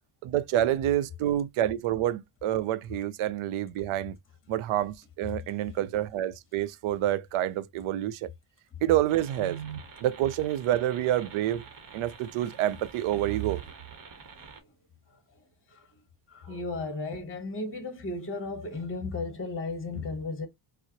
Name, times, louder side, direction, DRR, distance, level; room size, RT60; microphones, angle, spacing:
voice 1, 0.2-4.2 4.5-8.3 8.8-11.6 11.9-13.6 16.5-16.6, right 12 dB, 80° right, 0.5 m, -28 dB
sound 1, 9.1-14.6, right 5 dB, 40° right, 1.0 m, -49 dB
voice 2, 16.3-20.5, left 3 dB, 25° left, 0.9 m, -34 dB
4.4 x 2.0 x 2.8 m
cardioid pair, 85°, 49 cm